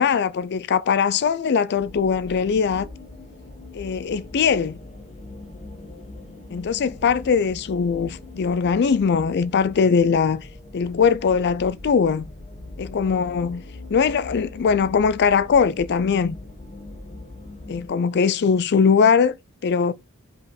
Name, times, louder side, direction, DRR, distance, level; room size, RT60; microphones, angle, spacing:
voice 1, 0.0-2.9 3.7-4.8 6.5-10.5 10.7-12.3 12.8-13.6 13.9-16.4 17.7-19.4 19.6-19.9, left 6 dB, 50° left, 0.4 m, -21 dB
sound 1, 1.7-17.9, left 2 dB, 35° left, 1.6 m, -41 dB
5.4 x 5.1 x 3.9 m
head